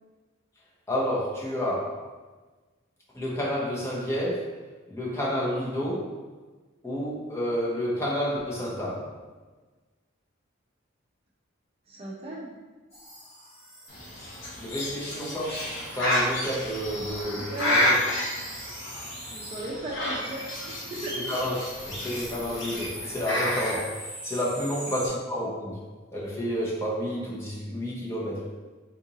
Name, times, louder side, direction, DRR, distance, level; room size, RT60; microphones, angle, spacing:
voice 1, 0.9-2.1 3.1-4.5 4.9-6.2 6.8-9.2 14.6-17.9 21.1-25.9 26.1-28.5, equal, 15° left, -6 dB, 0.7 m, -30 dB
voice 2, 11.9-12.5 17.3-17.9 19.3-21.2 24.6-25.0, right 2 dB, 30° right, -4 dB, 0.5 m, -36 dB
sound 1, 12.9-19.7 20.1-25.1, equal, 35° left, 1.2 m, -43 dB
Bird, 13.9-23.8, left 1 dB, 60° left, 0.8 m, -30 dB
3.9 x 2.5 x 2.8 m, 1.3 s
head